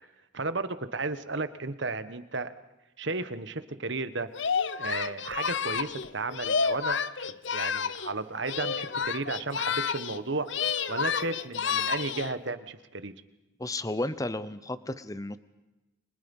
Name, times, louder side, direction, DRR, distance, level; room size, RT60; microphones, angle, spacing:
voice 1, 0.3-2.5 3.0-4.3 4.7-10.5 10.9-13.1, right 3 dB, 60° right, 12 dB, 1.4 m, -34 dB
Singing, 4.3-8.2 8.4-10.2 10.5-12.4, left 6 dB, 60° left, 0.8 m, -30 dB
voice 2, 13.6-15.4, left 2 dB, 15° left, 14 dB, 0.8 m, -33 dB
30.0 x 25.5 x 5.5 m, 1.0 s
head